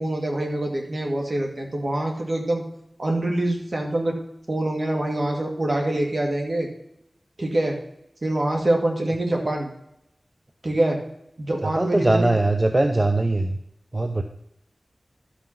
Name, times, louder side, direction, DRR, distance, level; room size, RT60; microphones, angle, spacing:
voice 1, 0.0-2.6 3.0-4.1 4.5-6.7 7.4-7.8 8.2-9.7 10.6-11.0 11.4-12.3, right 1 dB, 55° right, 1 dB, 2.2 m, -25 dB
voice 2, 11.6-13.6 13.9-14.2, right 2 dB, 30° right, 5 dB, 0.7 m, -21 dB
12.0 x 5.5 x 5.8 m, 0.79 s
wide cardioid pair, 55°, 0 cm